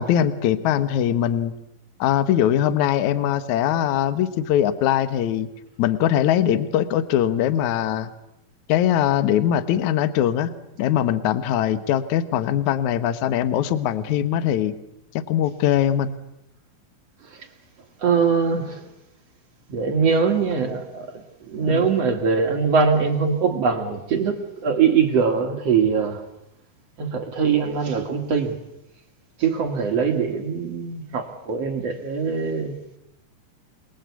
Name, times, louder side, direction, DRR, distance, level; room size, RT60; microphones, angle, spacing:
voice 1, 0.0-1.5 2.0-5.5 5.8-8.1 8.7-10.5 10.8-14.7 15.3-16.1 21.6-21.9, left 10 dB, 65° left, 2.1 m, -21 dB
voice 2, 18.0-18.8 19.7-21.1 21.5-24.4 24.6-26.2 27.0-28.5 29.4-32.7, right 5 dB, 50° right, 2.1 m, -22 dB
28.5 x 20.5 x 8.2 m
omnidirectional pair, 4.3 m